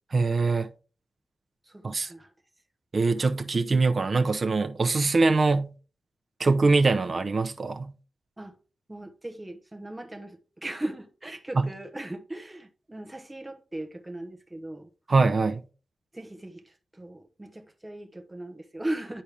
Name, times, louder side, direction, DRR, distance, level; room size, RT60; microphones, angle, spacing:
voice 1, 0.1-0.7 1.8-2.1 2.9-5.7 6.4-7.9 11.6-11.7 15.1-15.6, right 3 dB, 40° right, 0.7 m, -23 dB
voice 2, 1.7-2.3 8.4-8.6 8.9-14.9 16.1-19.2, right 1 dB, 15° right, 1.0 m, -38 dB
9.8 x 4.3 x 3.4 m
wide cardioid pair, 130°, 0 cm